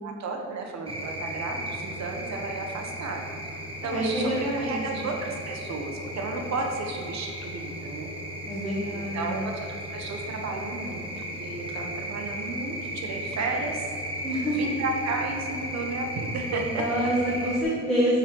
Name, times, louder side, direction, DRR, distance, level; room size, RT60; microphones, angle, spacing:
voice 1, 0.0-8.1 8.9-13.8 14.4-16.8, right 3 dB, 65° right, 2 dB, 1.1 m, -33 dB
sound 1, 0.9-17.6, equal, 20° right, 1.0 m, -35 dB
voice 2, 3.8-5.0 8.4-9.4 14.2-14.6 16.7-18.2, equal, ahead, -10 dB, 1.7 m, -27 dB
7.2 x 4.0 x 4.6 m, 2.4 s
cardioid pair, 90°, 30 cm